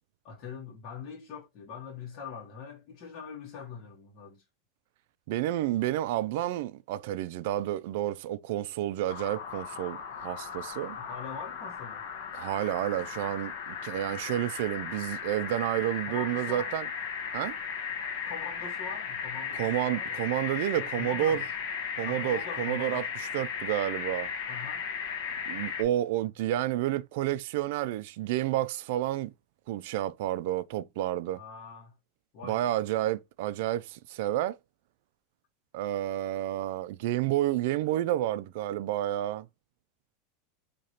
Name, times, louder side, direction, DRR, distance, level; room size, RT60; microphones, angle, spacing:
voice 1, 0.2-4.4 11.0-12.0 16.0-16.7 18.2-20.2 20.7-21.5 22.0-23.1 24.5-24.8 31.3-31.9 32.3-32.7, left 6 dB, 40° left, 1.4 m, -42 dB
voice 2, 5.3-11.0 12.3-16.9 17.3-17.6 19.5-21.4 22.0-24.3 25.5-29.3 29.7-31.4 32.4-34.6 35.7-39.5, right 13 dB, 65° right, 0.3 m, -30 dB
sound 1, 9.1-25.8, left 7 dB, 60° left, 1.1 m, -36 dB
4.7 x 2.9 x 2.8 m
supercardioid pair, 150°, 0 cm